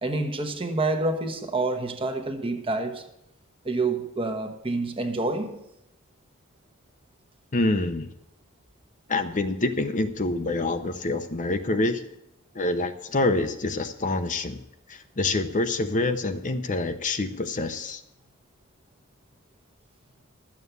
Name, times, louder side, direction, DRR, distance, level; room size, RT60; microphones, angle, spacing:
voice 1, 0.0-3.1 3.6-5.6, right 2 dB, 25° right, 1.1 m, -28 dB
voice 2, 7.5-8.1 9.1-12.1 12.5-14.6 14.9-18.0, left 2 dB, 35° left, 0.8 m, -26 dB
12.5 x 7.4 x 8.1 m
head